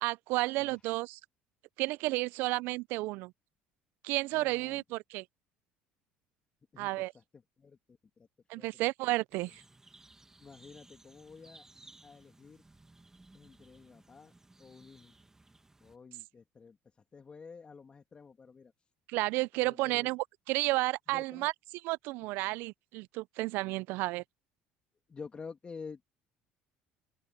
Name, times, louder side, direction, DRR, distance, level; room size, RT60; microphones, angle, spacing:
voice 1, 0.0-1.2 1.8-3.3 4.0-5.2 6.8-7.1 8.5-9.6 19.1-21.5 21.8-24.2, right 21 dB, 70° right, 0.5 m, -32 dB
voice 2, 4.3-4.8 6.7-8.3 8.6-8.8 10.4-11.7 12.0-12.6 13.3-14.3 14.6-15.1 15.8-18.9 19.5-20.1 21.1-21.5 25.1-26.0, left 5 dB, 30° left, 2.8 m, -50 dB
sound 1, 9.3-16.0, right 2 dB, 15° right, 1.9 m, -59 dB
open air
supercardioid pair, 80°, 4 cm